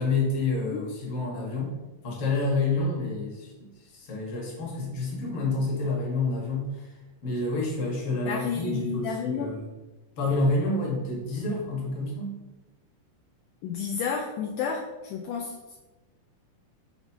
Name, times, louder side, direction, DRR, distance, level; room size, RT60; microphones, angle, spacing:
voice 1, 0.0-1.7 2.0-6.9 7.2-9.7 10.2-12.4, left 2 dB, 50° left, -2 dB, 2.3 m, -28 dB
voice 2, 8.3-9.5 13.6-15.8, left 6 dB, 75° left, 1 dB, 2.0 m, -31 dB
5.9 x 3.9 x 5.5 m, 1.1 s
omnidirectional pair, 3.8 m